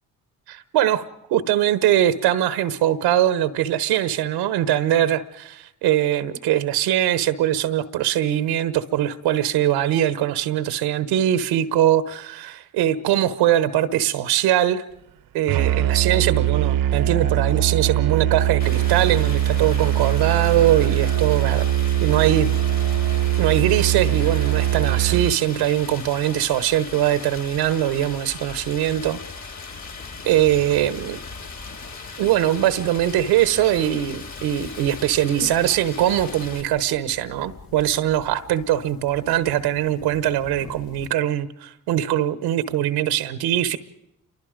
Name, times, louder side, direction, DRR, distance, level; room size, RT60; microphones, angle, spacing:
voice 1, 0.5-1.0 1.3-14.8 15.3-21.6 22.0-22.5 23.4-29.2 30.2-31.2 32.2-43.8, right 12 dB, 90° right, 13 dB, 1.1 m, -21 dB
Musical instrument, 15.5-25.4, right 12 dB, 60° right, 0.8 m, -21 dB
Stream, 18.6-36.6, left 4 dB, 45° left, 3.7 m, -38 dB
sound 1, 29.7-41.1, left 3 dB, 65° left, 2.4 m, -45 dB
28.5 x 24.0 x 5.1 m, 0.78 s
supercardioid pair, 65°, 38 cm